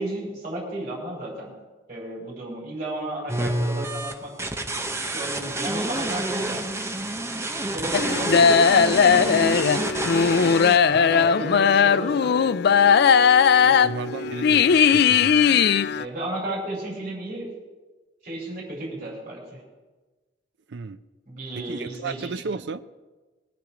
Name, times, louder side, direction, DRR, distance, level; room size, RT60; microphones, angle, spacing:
voice 1, 0.0-1.5 1.9-4.3 5.0-6.7 7.6-10.1 10.9-12.3 13.6-13.8 16.0-17.5 18.2-19.6 21.3-22.6, right 1 dB, 40° right, -4 dB, 4.8 m, -34 dB
sound 1, 3.3-10.8, right 1 dB, 15° right, 0.9 m, -28 dB
sound 2, 7.9-16.0, left 6 dB, 60° left, 0.4 m, -18 dB
voice 2, 10.9-11.3 13.8-15.7 20.7-21.0 21.5-22.8, right 4 dB, 65° right, 11 dB, 0.5 m, -34 dB
21.5 x 9.9 x 5.0 m, 1.3 s
head